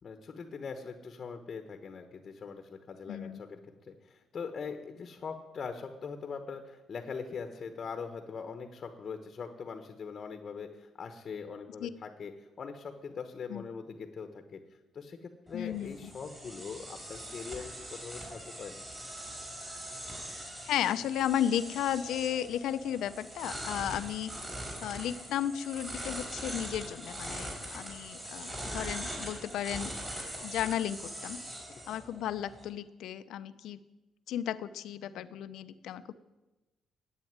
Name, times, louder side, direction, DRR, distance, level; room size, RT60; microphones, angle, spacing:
voice 1, 0.0-3.6 3.9-12.3 12.6-14.6 14.9-18.8, left 5 dB, 40° left, 7 dB, 1.1 m, -42 dB
voice 2, 3.1-3.4 11.8-11.9 13.5-13.6 15.5-16.1 20.6-24.3 24.8-29.9 30.4-31.4 31.9-33.8 34.3-36.1, left 10 dB, 80° left, 13 dB, 0.7 m, -34 dB
sound 1, 15.5-32.7, right 1 dB, 15° right, 5.1 m, -42 dB
11.0 x 8.5 x 9.5 m, 1.1 s
cardioid pair, 135°, 0 cm